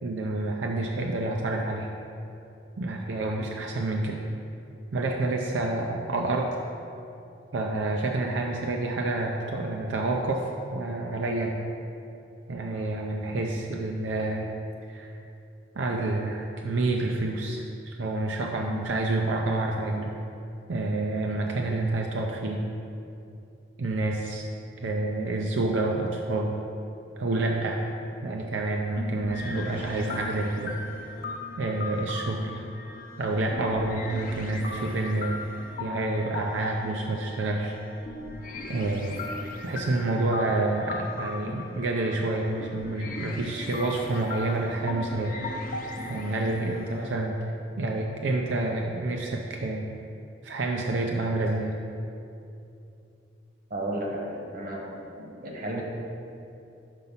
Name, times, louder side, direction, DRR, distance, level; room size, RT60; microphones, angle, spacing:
voice 1, 0.0-1.9 2.8-4.2 4.9-6.5 7.5-11.6 12.5-14.5 14.9-15.1 15.7-20.2 20.7-22.6 23.8-24.4 24.8-26.6 27.2-27.8 28.2-30.8 31.6-32.7 33.2-35.5 35.8-37.7 38.7-39.2 39.6-45.3 46.1-47.4 47.8-49.9 50.4-51.7, right 2 dB, 85° right, 1 dB, 0.5 m, -28 dB
sound 1, 29.0-47.1, left 2 dB, 50° left, 0.7 m, -38 dB
voice 2, 53.7-54.9 55.1-55.8, right 1 dB, 50° right, -2 dB, 1.2 m, -33 dB
5.5 x 5.3 x 5.6 m, 2.7 s
head